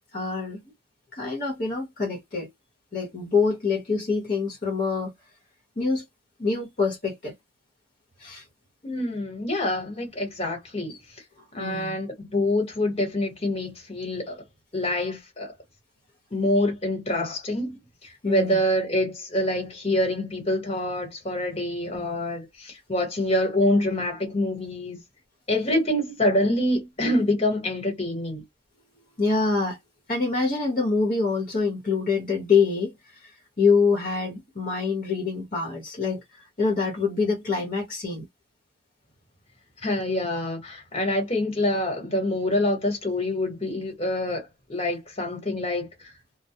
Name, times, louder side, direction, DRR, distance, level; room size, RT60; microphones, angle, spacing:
voice 1, 0.1-0.6 1.1-2.5 2.9-5.1 5.8-6.0 6.4-7.3 8.2-8.4 10.9-11.0 11.6-12.0 18.2-18.6 21.9-22.2 29.2-29.8 30.1-38.3, left 4 dB, 50° left, 1.0 m, -25 dB
voice 2, 8.8-11.0 11.5-14.4 14.7-15.5 16.3-25.0 25.5-28.4 39.8-46.1, left 1 dB, 35° left, 1.3 m, -26 dB
2.2 x 2.1 x 2.7 m
head